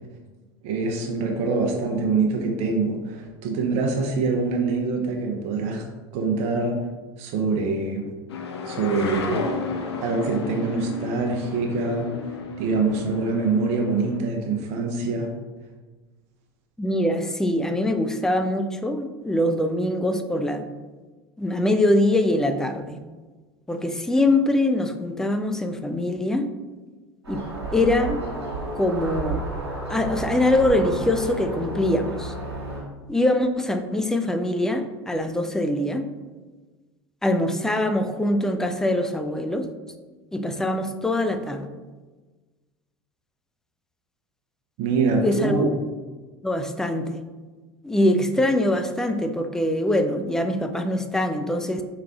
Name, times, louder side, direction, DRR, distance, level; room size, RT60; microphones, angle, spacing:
voice 1, 0.6-5.9 6.1-6.8 7.2-8.0 8.6-9.4 10.0-12.1 12.6-15.3 44.8-45.7, right 4 dB, 50° right, 2 dB, 0.7 m, -24 dB
sound 1, 8.3-14.2, left 3 dB, 80° left, 0.5 m, -32 dB
voice 2, 16.8-20.6 21.4-23.0 23.7-26.5 27.3-27.4 27.7-28.2 28.7-29.4 29.9-32.3 33.1-36.0 37.2-39.7 40.3-41.7 45.2-45.6 46.4-47.2 47.8-51.8, left 1 dB, 5° left, 7 dB, 0.3 m, -23 dB
sound 2, 27.2-32.8, right 2 dB, 90° right, 1.3 m, -32 dB
4.8 x 3.2 x 2.3 m, 1.3 s
hypercardioid pair, 80°, 14 cm